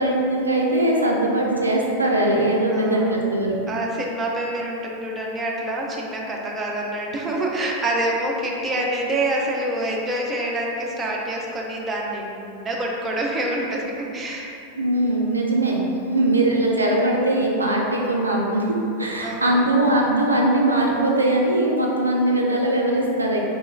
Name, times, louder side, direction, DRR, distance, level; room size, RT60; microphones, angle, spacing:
voice 1, 0.0-3.5 14.8-23.4, right 1 dB, 80° right, -2 dB, 0.4 m, -21 dB
voice 2, 2.7-3.2 3.7-14.6 16.1-16.2 19.2-19.7, right 1 dB, 20° right, -2 dB, 0.5 m, -27 dB
3.9 x 2.9 x 2.3 m, 2.7 s
figure-of-eight pair, 90°, 0 cm